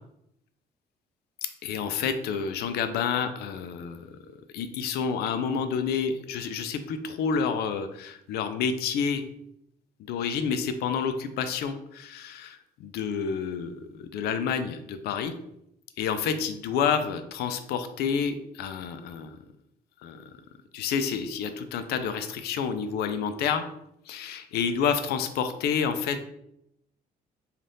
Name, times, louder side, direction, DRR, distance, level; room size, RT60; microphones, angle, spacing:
voice 1, 1.6-4.1 4.5-9.2 10.1-15.3 16.0-19.3 20.0-20.2 20.7-23.6 24.1-26.2, left 6 dB, 70° left, 9 dB, 0.4 m, -29 dB
3.3 x 2.4 x 2.6 m, 0.79 s
cardioid pair, 110°, 17 cm